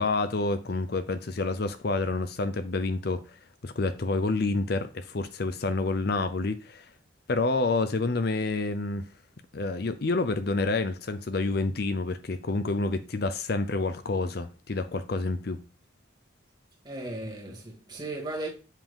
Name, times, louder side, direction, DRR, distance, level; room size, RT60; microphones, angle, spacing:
voice 1, 0.0-6.9 7.3-9.1 9.5-15.6, left 3 dB, 55° left, 0.6 m, -28 dB
voice 2, 16.8-18.5, right 2 dB, 20° right, 2.0 m, -36 dB
7.4 x 5.3 x 3.7 m
head